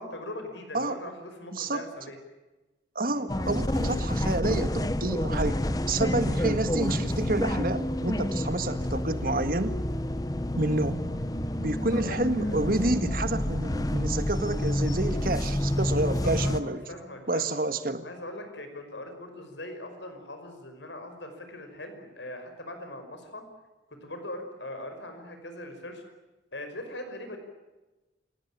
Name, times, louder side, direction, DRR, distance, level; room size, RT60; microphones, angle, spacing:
voice 1, 0.0-2.2 3.1-3.2 6.0-6.3 10.6-10.8 11.4-11.5 11.9-12.5 16.2-17.5 18.0-23.4 23.9-26.0 26.5-27.4, left 1 dB, 80° left, 6 dB, 5.5 m, -41 dB
voice 2, 1.5-1.8 2.9-5.6 5.9-9.8 10.5-11.1 11.6-16.8 17.3-18.0, right 2 dB, 50° right, 10 dB, 1.8 m, -29 dB
sound 1, 3.3-16.6, left 1 dB, 20° left, 0.9 m, -29 dB
28.5 x 17.5 x 8.9 m, 1.1 s
head